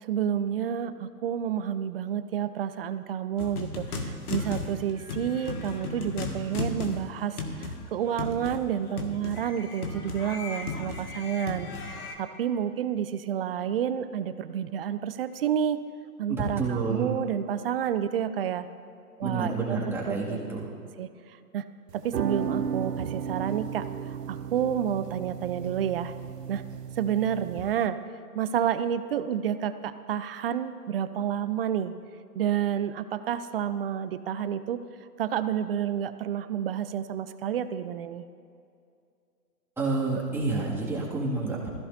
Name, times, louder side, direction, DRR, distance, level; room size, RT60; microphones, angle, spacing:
voice 1, 0.0-11.7 12.2-15.8 16.2-18.7 19.2-19.6 20.1-20.4 21.0-21.1 21.5-21.6 21.9-26.1 26.5-26.6 27.0-28.0 28.3-31.9 32.4-34.8 35.2-38.2, right 9 dB, 40° right, 12 dB, 0.5 m, -29 dB
sound 1, 3.4-12.1, left 3 dB, 70° left, 2.0 m, -35 dB
voice 2, 16.3-17.1 19.2-20.7 39.8-41.7, right 3 dB, 5° right, -6 dB, 2.1 m, -29 dB
sound 2, 21.9-27.9, right 7 dB, 85° right, 0.8 m, -35 dB
20.0 x 15.0 x 2.7 m, 2.4 s
hypercardioid pair, 135°, 46 cm